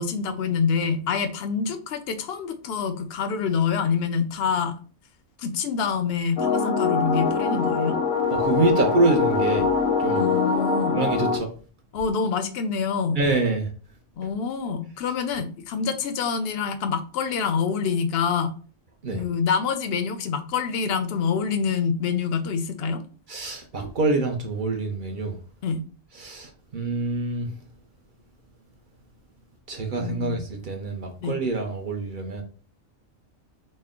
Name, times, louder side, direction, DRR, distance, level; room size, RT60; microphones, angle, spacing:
voice 1, 0.0-4.7 5.4-8.0 10.2-11.0 11.9-13.2 14.2-18.5 19.1-23.0 25.6-25.8 30.0-30.4 31.2-31.4, left 6 dB, 65° left, 0.6 m, -26 dB
sound 1, 6.4-11.4, left 5 dB, 85° left, 1.1 m, -23 dB
voice 2, 8.3-9.7 10.0-10.3 10.9-11.5 13.2-13.7 19.0-19.2 23.3-25.4 26.2-27.5 29.7-32.4, right 3 dB, 50° right, 0.6 m, -25 dB
4.2 x 2.1 x 3.6 m
omnidirectional pair, 1.4 m